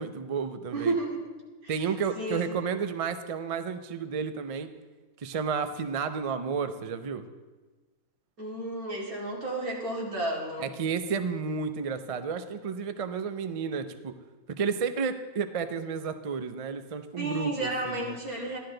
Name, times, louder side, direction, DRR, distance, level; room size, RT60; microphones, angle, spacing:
voice 1, 0.0-0.9 1.7-4.7 5.2-7.3 10.6-14.1 14.5-18.2, right 6 dB, 50° right, 9 dB, 0.4 m, -32 dB
voice 2, 0.7-1.3 1.6-1.9 2.1-2.4 8.4-10.7 17.2-18.6, right 2 dB, 80° right, -3 dB, 2.8 m, -32 dB
14.5 x 11.5 x 3.9 m, 1.3 s
omnidirectional pair, 1.5 m